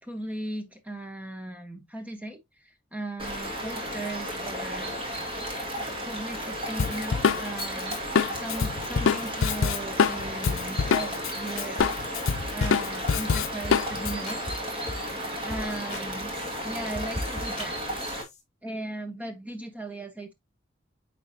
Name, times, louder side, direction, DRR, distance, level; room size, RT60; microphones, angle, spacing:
voice 1, 0.0-5.0 6.0-11.8 12.5-14.5 15.4-16.3 16.6-17.8 18.6-20.3, right 2 dB, 5° right, 1.0 m, -37 dB
sound 1, 3.2-18.2, equal, 25° right, 2.1 m, -34 dB
Drum kit, 6.8-11.3 11.6-14.1, left 6 dB, 80° left, 0.5 m, -25 dB
sound 2, 11.8-11.9 12.2-12.8 13.0-13.3 13.6-13.8 14.1-15.1 15.5-16.1 16.3-18.4, left 1 dB, 35° left, 2.9 m, -38 dB
9.1 x 3.9 x 2.8 m
head